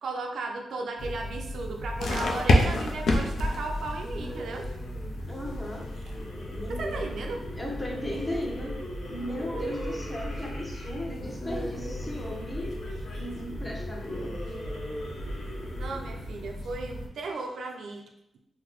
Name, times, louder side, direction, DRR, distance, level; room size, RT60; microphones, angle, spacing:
voice 1, 0.0-4.7 6.7-7.5 15.8-18.1, right 3 dB, 75° right, 3 dB, 0.3 m, -35 dB
sound 1, 1.0-17.1, left 1 dB, 80° left, 0.4 m, -32 dB
sound 2, 2.5-17.4, equal, 55° left, 0.8 m, -42 dB
voice 2, 5.3-5.9 6.5-7.1 7.5-8.7 9.1-12.8 13.2-14.4, left 1 dB, 15° left, -2 dB, 0.7 m, -36 dB
3.7 x 2.0 x 3.0 m, 0.85 s
cardioid pair, 100°, 0 cm